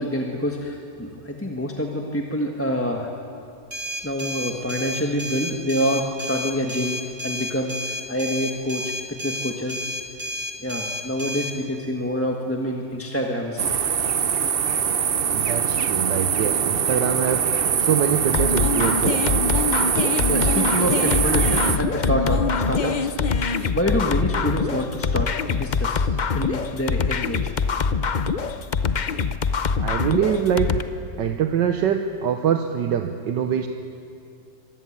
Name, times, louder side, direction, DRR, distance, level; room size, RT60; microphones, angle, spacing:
voice 1, 0.0-3.1 4.0-9.8 10.6-13.7 20.3-23.4 23.7-26.0 26.3-27.5, equal, 10° left, 1 dB, 1.3 m, -27 dB
sound 1, 3.7-11.5, equal, 20° right, 2.3 m, -31 dB
sound 2, 13.6-21.8, right 7 dB, 50° right, 0.6 m, -23 dB
voice 2, 15.3-19.6 29.8-30.7 31.2-33.7, right 8 dB, 80° right, 6 dB, 1.6 m, -24 dB
sound 3, 18.3-30.8, left 5 dB, 85° left, 0.4 m, -24 dB
25.0 x 19.0 x 8.6 m, 2.6 s
omnidirectional pair, 1.9 m